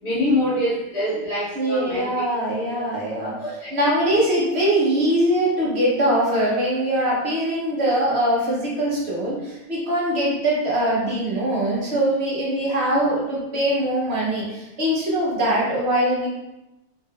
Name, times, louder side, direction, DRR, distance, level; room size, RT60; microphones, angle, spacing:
voice 1, 0.0-2.3 2.6-2.8 3.2-3.8 4.0-4.2, left 1 dB, 65° left, -7 dB, 1.4 m, -25 dB
voice 2, 1.5-3.3 3.7-16.3, right 1 dB, 60° right, -6 dB, 1.3 m, -22 dB
3.7 x 3.0 x 2.4 m, 0.97 s
omnidirectional pair, 1.2 m